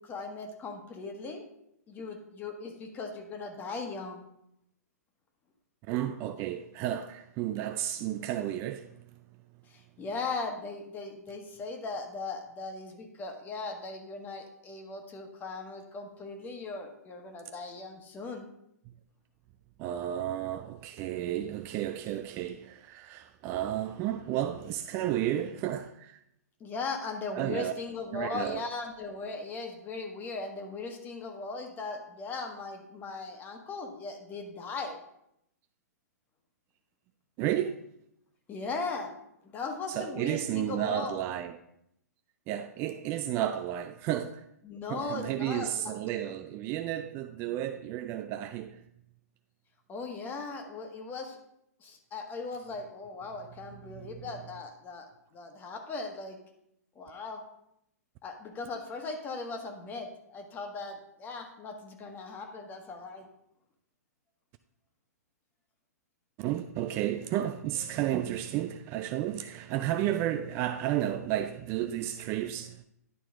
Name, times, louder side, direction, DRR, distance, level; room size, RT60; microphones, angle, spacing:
voice 1, 0.0-1.5 1.9-4.2 9.7-18.5 26.6-35.0 38.5-39.2 39.4-41.2 44.6-45.9 49.9-51.4 51.8-55.1 55.3-56.4 56.9-57.4 58.2-63.3, left 3 dB, 20° left, 1.3 m, -38 dB
voice 2, 5.9-9.0 19.8-26.2 27.3-27.7 28.1-28.6 37.4-37.8 39.9-41.6 42.5-44.4 44.9-48.8 53.9-54.1 66.4-72.8, right 12 dB, 30° right, 0.3 m, -32 dB
11.0 x 4.5 x 3.7 m
figure-of-eight pair, 120°, 9 cm